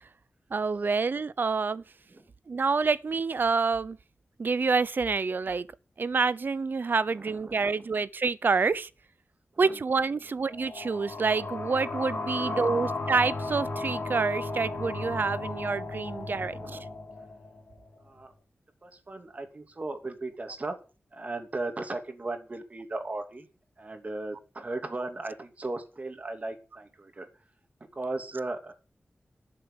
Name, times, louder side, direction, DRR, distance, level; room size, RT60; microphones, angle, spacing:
voice 1, 0.5-1.8 2.5-4.0 4.4-5.7 6.0-8.9 9.6-16.8, right 4 dB, 55° right, 0.8 m, -27 dB
voice 2, 7.1-7.8 9.5-9.8 12.3-13.0 16.3-16.8 18.0-18.3 18.8-20.8 21.1-23.5 23.8-27.3 27.9-28.7, right 2 dB, 40° right, 2.8 m, -37 dB
sound 1, 10.5-17.9, left 3 dB, 60° left, 7.3 m, -35 dB
13.0 x 7.4 x 8.8 m
wide cardioid pair, 105°, 4 cm